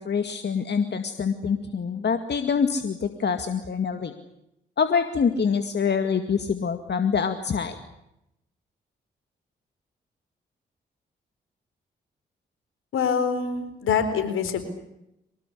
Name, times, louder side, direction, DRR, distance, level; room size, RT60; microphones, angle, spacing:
voice 1, 0.0-4.1 4.8-7.7, left 6 dB, 55° left, 8 dB, 2.2 m, -25 dB
voice 2, 12.9-14.6, left 6 dB, 75° left, 10 dB, 4.4 m, -25 dB
24.0 x 19.5 x 9.9 m, 0.86 s
hypercardioid pair, 40°, 21 cm